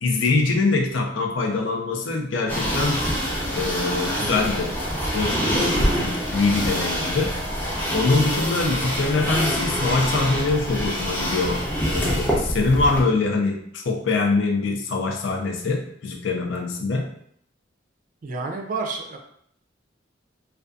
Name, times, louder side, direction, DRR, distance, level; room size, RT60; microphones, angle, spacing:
voice 1, 0.0-3.0 3.6-4.8 5.1-7.3 7.9-17.1, left 3 dB, 90° left, 2 dB, 0.5 m, -24 dB
sound 1, 2.5-13.0, equal, 10° left, 0.5 m, -25 dB
voice 2, 18.2-19.2, right 3 dB, 45° right, 2 dB, 0.4 m, -29 dB
2.5 x 2.3 x 2.3 m, 0.67 s
head